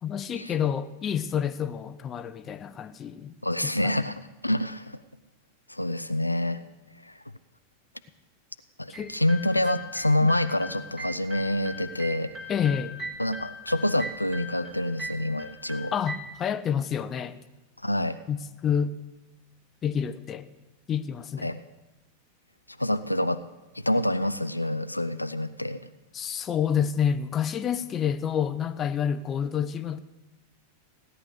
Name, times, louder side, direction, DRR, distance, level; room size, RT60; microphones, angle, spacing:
voice 1, 0.0-3.3 3.6-3.9 8.9-9.2 10.2-10.3 12.5-12.9 15.9-17.4 18.3-18.9 19.8-20.5 20.9-21.5 26.1-30.0, left 8 dB, 25° left, 0.7 m, -28 dB
voice 2, 3.4-5.0 5.7-6.6 7.0-7.2 8.8-12.3 13.2-15.9 17.8-18.2 21.4-21.6 22.8-23.4 23.7-25.8, left 1 dB, 85° left, 0.5 m, -27 dB
sound 1, 8.9-16.2, equal, 25° right, 2.5 m, -40 dB
16.5 x 10.0 x 6.6 m
figure-of-eight pair, 90°, 0 cm